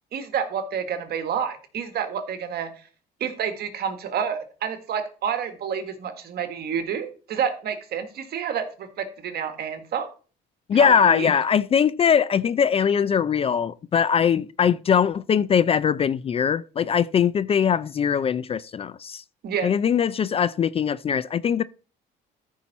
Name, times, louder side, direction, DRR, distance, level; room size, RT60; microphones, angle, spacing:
voice 1, 0.1-2.9 3.2-10.1 10.7-11.3 19.4-19.7, right 7 dB, 55° right, 1.8 m, -29 dB
voice 2, 10.7-19.2 19.6-21.6, left 7 dB, 30° left, 0.4 m, -21 dB
13.5 x 5.6 x 4.2 m
cardioid pair, 135°, 19 cm